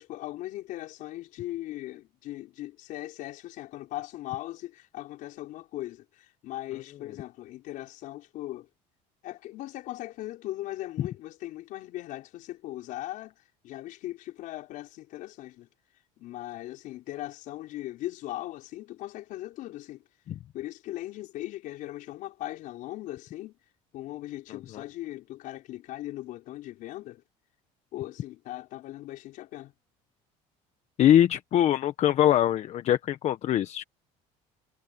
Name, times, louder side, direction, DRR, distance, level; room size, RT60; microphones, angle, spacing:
voice 1, 0.0-8.7 9.2-13.4 13.6-15.7 16.2-20.0 20.5-23.5 23.9-27.2 27.9-29.7, left 15 dB, 65° left, 5.4 m, -39 dB
voice 2, 31.0-33.8, left 11 dB, 50° left, 1.1 m, -22 dB
cardioid pair, 130°, 15 cm